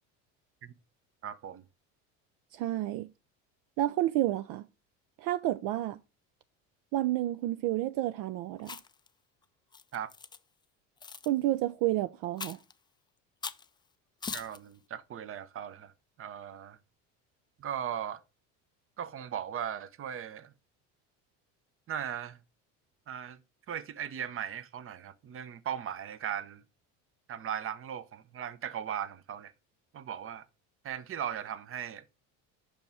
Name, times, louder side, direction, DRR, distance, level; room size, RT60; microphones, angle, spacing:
voice 1, 1.2-1.6 9.9-10.1 14.3-15.9 16.2-16.8 17.6-18.2 19.0-20.5 21.9-22.4 23.1-23.4 23.7-26.6 27.3-29.5 29.9-30.4 30.8-32.0, right 9 dB, 35° right, 0.8 m, -38 dB
voice 2, 2.5-3.1 3.8-4.7 5.2-6.0 6.9-8.8 11.3-12.6, right 14 dB, 65° right, 0.5 m, -30 dB
Chewing mastication, 8.6-9.1 9.7-10.4 11.0-11.3 12.4-12.7 13.4-13.7 14.2-14.6, left 5 dB, 15° left, 0.3 m, -40 dB
5.7 x 5.2 x 4.6 m
supercardioid pair, 90°, 37 cm